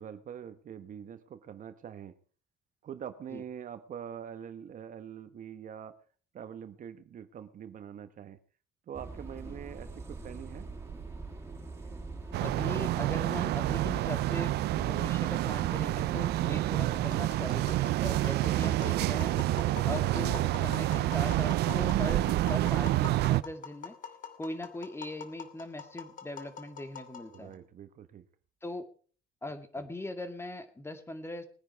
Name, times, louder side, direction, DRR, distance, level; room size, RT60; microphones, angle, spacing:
voice 1, 0.0-2.1 2.8-6.0 6.3-8.4 8.9-10.7 27.3-28.2 29.7-29.8, right 8 dB, 50° right, 11 dB, 1.3 m, -44 dB
sound 1, 8.9-23.2, right 3 dB, 15° right, 5.3 m, -43 dB
sound 2, 12.3-23.4, right 16 dB, 75° right, 0.6 m, -28 dB
voice 2, 12.4-19.3 19.8-23.9 24.4-27.6 28.6-28.8 29.4-31.5, left 2 dB, 15° left, 9 dB, 2.2 m, -40 dB
Tap, 17.1-27.5, left 6 dB, 50° left, 2.7 m, -46 dB
20.5 x 9.8 x 4.7 m, 0.42 s
cardioid pair, 110°, 17 cm